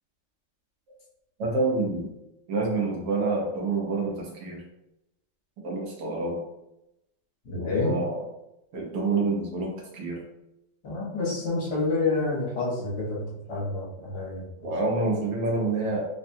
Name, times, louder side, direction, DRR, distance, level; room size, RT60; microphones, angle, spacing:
voice 1, 1.4-2.1 2.5-4.6 5.6-6.4 7.6-8.2 8.7-10.3 14.6-16.1, right 3 dB, 70° right, -1 dB, 1.2 m, -27 dB
voice 2, 7.4-8.0 10.8-14.5, left 3 dB, 65° left, -6 dB, 1.5 m, -28 dB
3.6 x 2.2 x 2.6 m, 0.88 s
omnidirectional pair, 2.1 m